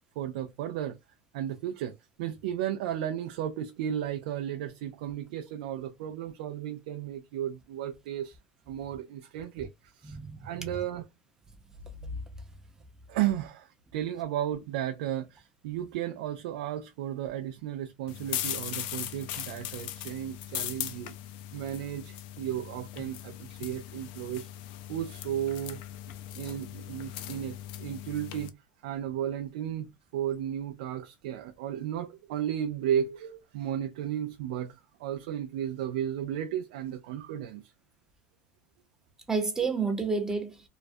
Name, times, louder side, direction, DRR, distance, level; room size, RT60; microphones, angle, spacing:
voice 1, 0.2-1.0 1.3-8.4 8.7-11.1 13.1-21.1 21.5-24.5 24.9-25.8 26.3-28.6 28.8-37.7, right 10 dB, 80° right, 0.3 m, -34 dB
voice 2, 10.0-10.6 12.0-12.2 39.3-40.7, right 4 dB, 10° right, 0.6 m, -30 dB
Kochendes Wasser auf Herd, 18.1-28.5, left 12 dB, 75° left, 0.4 m, -39 dB
2.3 x 2.1 x 2.5 m
supercardioid pair, 120°, 5 cm